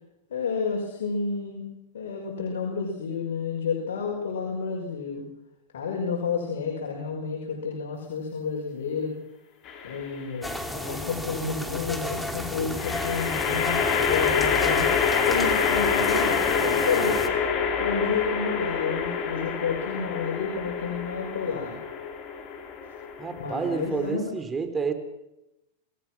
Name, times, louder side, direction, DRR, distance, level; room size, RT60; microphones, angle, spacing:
voice 1, 0.3-5.3 5.7-9.1 9.8-14.9 15.3-17.2 17.8-21.8 23.4-24.2, left 5 dB, 80° left, 0 dB, 5.6 m, -30 dB
sound 1, 9.7-10.2 12.8-24.1, left 6 dB, 35° left, 5.2 m, -26 dB
sound 2, 10.4-17.3, left 1 dB, 5° left, 3.2 m, -33 dB
voice 2, 23.2-24.9, right 5 dB, 20° right, 9 dB, 3.8 m, -29 dB
28.0 x 19.5 x 6.2 m, 0.91 s
hypercardioid pair, 125°, 0 cm